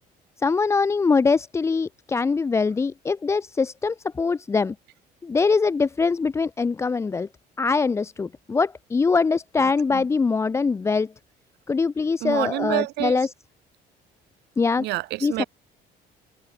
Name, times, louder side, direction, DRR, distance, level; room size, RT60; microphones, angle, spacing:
voice 1, 0.4-4.8 5.2-7.3 7.6-11.1 11.7-13.3 14.6-14.9 15.2-15.4, left 4 dB, 15° left, 0.3 m, -23 dB
voice 2, 9.6-10.1 12.2-13.2 14.8-15.4, right 19 dB, 80° right, 0.9 m, -28 dB
cardioid pair, 110°, 17 cm